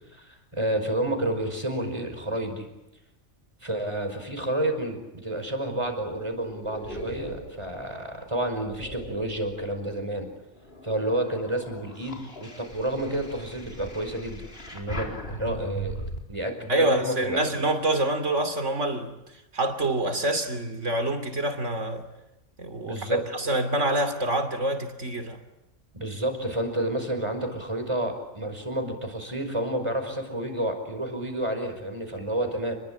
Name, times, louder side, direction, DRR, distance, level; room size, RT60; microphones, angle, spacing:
voice 1, 0.1-2.7 3.6-10.3 10.8-16.0 16.3-17.4 22.8-23.2 25.9-32.8, right 1 dB, 25° right, 5.2 m, -30 dB
sound 1, 5.8-10.0 10.5-16.2, right 1 dB, 50° left, 4.3 m, -39 dB
voice 2, 16.7-19.1 19.5-22.0 22.6-25.4, right 1 dB, 75° right, 3.3 m, -26 dB
29.5 x 21.5 x 8.9 m
omnidirectional pair, 1.3 m